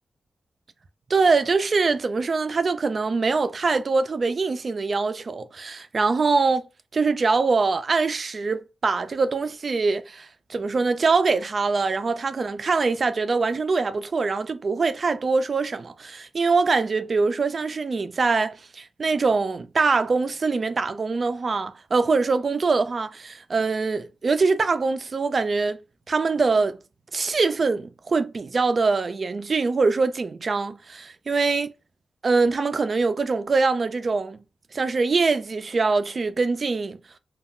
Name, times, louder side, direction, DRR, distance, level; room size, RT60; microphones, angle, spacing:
voice 1, 1.1-6.7 6.9-25.8 26.1-26.8 27.1-31.7 32.2-34.4 34.7-37.0, right 4 dB, 45° right, 0.3 m, -23 dB
2.2 x 2.2 x 3.5 m
wide cardioid pair, 100°, 0 cm